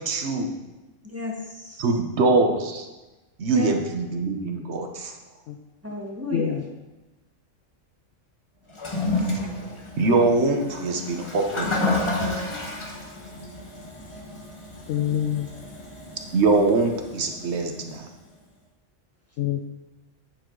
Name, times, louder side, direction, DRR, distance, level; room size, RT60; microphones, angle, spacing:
voice 1, 0.0-0.5 1.8-2.9 3.4-5.2 9.2-9.5 10.0-12.0 16.3-18.1, right 3 dB, 60° right, 3 dB, 1.2 m, -23 dB
voice 2, 1.0-2.0 3.5-3.7 5.8-6.5 14.1-14.2, left 2 dB, 10° right, -2 dB, 1.4 m, -33 dB
voice 3, 6.3-6.6 14.9-15.6 19.4-19.6, left 10 dB, 75° left, 5 dB, 0.9 m, -26 dB
Toilet flush, 8.7-18.0, left 2 dB, 25° left, 1.0 m, -31 dB
8.8 x 7.6 x 3.9 m, 1.1 s
omnidirectional pair, 1.3 m